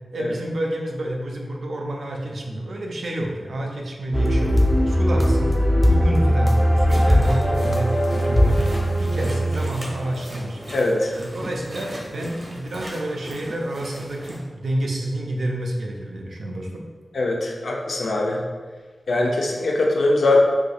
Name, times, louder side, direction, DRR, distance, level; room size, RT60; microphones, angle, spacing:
voice 1, 0.1-4.5 4.9-5.6 5.9-7.9 8.2-8.6 9.0-10.6 11.1-16.8, right 1 dB, 75° right, 0 dB, 0.5 m, -29 dB
sound 1, 4.1-10.2, equal, 10° left, 0.4 m, -19 dB
sound 2, 6.8-14.4, equal, 40° right, 0.9 m, -38 dB
voice 2, 10.7-11.1 17.1-18.4 19.1-20.4, left 2 dB, 85° left, -1 dB, 0.5 m, -21 dB
4.5 x 2.6 x 2.3 m, 1.4 s
wide cardioid pair, 105°, 0 cm